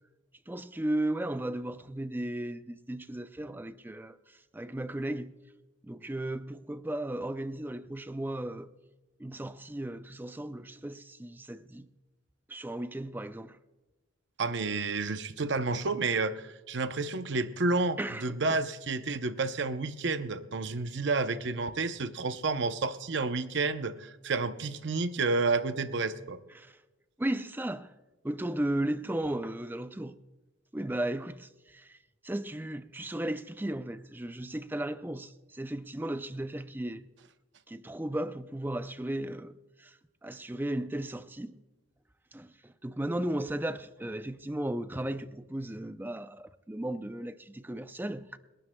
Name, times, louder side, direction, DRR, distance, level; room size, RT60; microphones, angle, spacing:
voice 1, 0.5-5.3 5.8-8.7 9.2-11.9 12.5-13.6 18.0-18.6 26.5-26.8 27.2-27.9 28.2-30.2 30.7-37.1 37.7-41.6 42.3-48.4, right 1 dB, 10° right, 0.4 m, -35 dB
voice 2, 14.4-26.4, right 3 dB, 60° right, 0.7 m, -30 dB
28.5 x 12.5 x 2.2 m
head